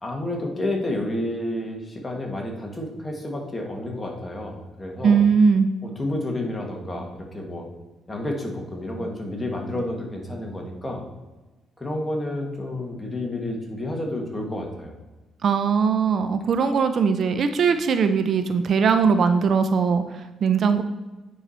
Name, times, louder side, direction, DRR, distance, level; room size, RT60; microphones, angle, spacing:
voice 1, 0.0-5.2 5.8-7.7 8.1-11.1 11.8-14.9, left 1 dB, 20° left, 1 dB, 1.9 m, -30 dB
voice 2, 5.0-5.7 15.4-20.8, right 6 dB, 55° right, 9 dB, 0.6 m, -20 dB
9.3 x 4.8 x 4.3 m, 1.1 s
cardioid pair, 90°, 0 cm